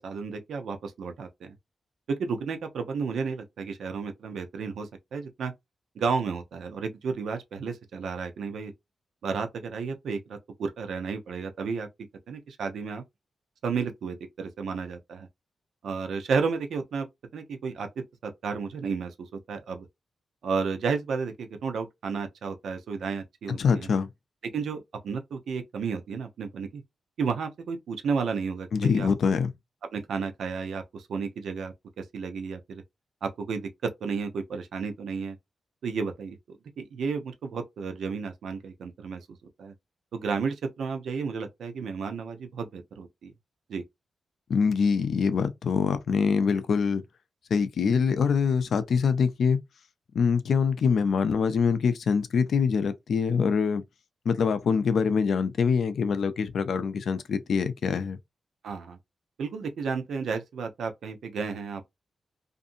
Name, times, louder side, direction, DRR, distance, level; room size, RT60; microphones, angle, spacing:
voice 1, 0.0-1.5 2.1-5.5 6.0-8.7 9.2-11.9 12.3-13.0 13.6-15.3 15.8-17.1 17.3-17.9 18.2-19.9 20.4-23.9 24.5-26.8 27.2-29.1 29.9-32.8 33.2-35.4 35.8-39.3 39.6-39.7 40.1-43.3 43.7-43.8 58.6-59.0 59.4-61.8, right 5 dB, 90° right, 0.6 m, -32 dB
voice 2, 23.5-24.1 28.7-29.5 44.5-47.0 47.5-49.6 50.1-53.8 54.3-58.2, left 6 dB, 65° left, 0.4 m, -24 dB
2.6 x 2.5 x 2.5 m
wide cardioid pair, 150°, 0 cm